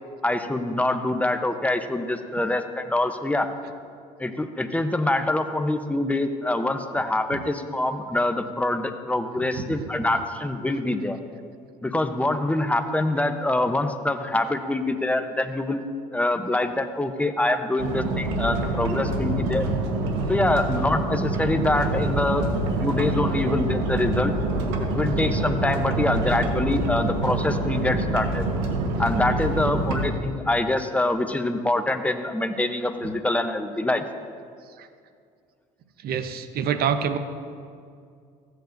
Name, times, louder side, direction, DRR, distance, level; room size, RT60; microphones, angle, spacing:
voice 1, 0.2-3.5 4.2-11.2 11.8-15.8 16.1-19.7 20.3-22.5 22.8-24.3 24.8-28.5 29.0-34.0, left 2 dB, 5° left, 7 dB, 0.8 m, -25 dB
sound 1, 17.8-30.1, right 2 dB, 80° right, 1.2 m, -26 dB
voice 2, 36.0-37.2, right 8 dB, 55° right, 10 dB, 0.8 m, -26 dB
15.0 x 8.1 x 2.6 m, 2.3 s
supercardioid pair, 75°, 18 cm